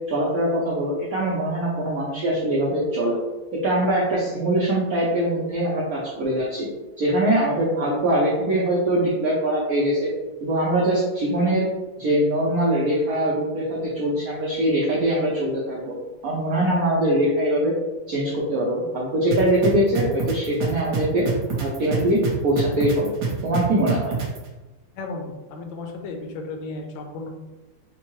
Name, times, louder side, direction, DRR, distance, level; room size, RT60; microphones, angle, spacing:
voice 1, 0.1-3.2 3.5-6.7 7.0-10.1 10.4-11.7 12.0-15.9 16.2-17.7 18.1-21.3 21.6-23.1 23.4-24.1, right 1 dB, 90° right, -5 dB, 0.7 m, -22 dB
sound 1, 19.3-24.4, right 4 dB, 60° right, 1.2 m, -26 dB
voice 2, 24.9-27.3, left 3 dB, 75° left, 3 dB, 1.2 m, -34 dB
4.4 x 2.2 x 3.0 m, 1.1 s
omnidirectional pair, 2.4 m